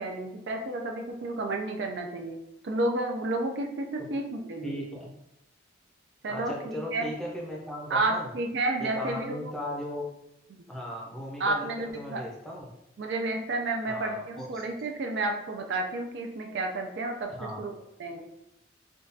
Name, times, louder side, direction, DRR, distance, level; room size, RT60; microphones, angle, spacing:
voice 1, 0.0-2.4 2.6-4.8 6.2-7.1 7.9-9.4 11.4-12.2 13.0-17.7 18.0-18.2, right 2 dB, 60° right, 3 dB, 0.4 m, -31 dB
voice 2, 4.6-5.1 6.3-8.3 8.8-10.1 10.7-12.7 13.9-14.6 17.4-17.6, equal, ahead, -3 dB, 0.6 m, -37 dB
3.6 x 2.3 x 2.6 m, 0.84 s
head